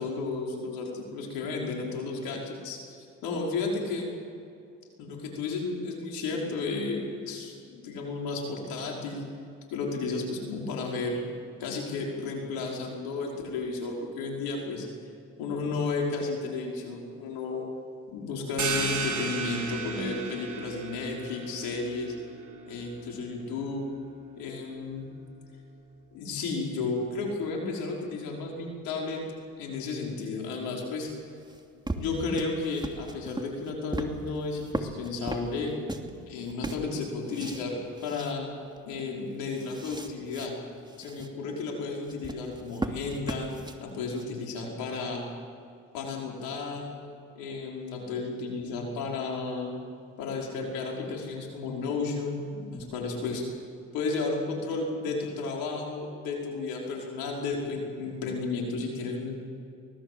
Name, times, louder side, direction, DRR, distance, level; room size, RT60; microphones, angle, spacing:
voice 1, 0.0-4.1 5.0-9.3 9.7-11.2 11.6-14.9 15.4-17.7 18.1-22.2 22.7-23.9 24.4-25.1 26.1-31.1 32.0-35.7 36.3-38.5 38.9-40.5 41.0-43.5 43.8-45.2 45.9-46.9 47.4-49.7 50.2-53.4 53.9-59.4, left 3 dB, 80° left, -1 dB, 5.5 m, -33 dB
sound 1, 18.6-24.0, right 4 dB, 55° right, 5.1 m, -35 dB
sound 2, 31.1-36.1 36.4-37.7 38.0-38.3 38.8-38.9 39.2-40.5 40.9-41.3 42.0-44.2, right 1 dB, 10° right, 2.8 m, -37 dB
24.0 x 19.5 x 7.9 m, 2.5 s
supercardioid pair, 65°, 34 cm